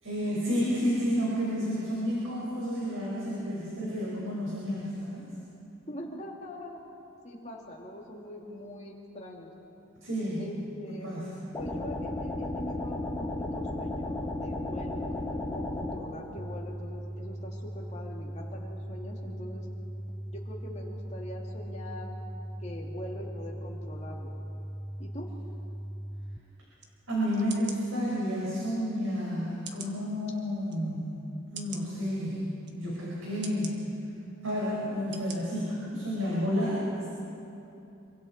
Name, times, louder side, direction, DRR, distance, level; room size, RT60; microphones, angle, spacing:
voice 1, 0.0-5.2 10.0-10.4 10.9-11.2 27.1-33.7 34.4-35.7 35.9-37.1, equal, 85° right, -6 dB, 5.4 m, -31 dB
voice 2, 5.9-6.8 7.2-9.5 10.4-11.1 11.6-19.7 20.3-22.1 22.6-24.4 25.0-25.3, left 1 dB, 35° left, -2 dB, 2.7 m, -43 dB
sound 1, 11.5-16.0, left 2 dB, 10° left, 2.2 m, -34 dB
sound 2, 16.4-26.4, right 1 dB, 10° right, 0.5 m, -39 dB
sound 3, 26.8-26.9 27.5-27.8 28.5-28.6 29.6-30.0 30.7-30.8 31.5-31.8 32.6-32.8 33.4-33.7 34.5-34.6 35.1-35.4 35.8-35.9, right 6 dB, 55° right, 1.6 m, -43 dB
27.0 x 24.0 x 4.4 m, 2.8 s
head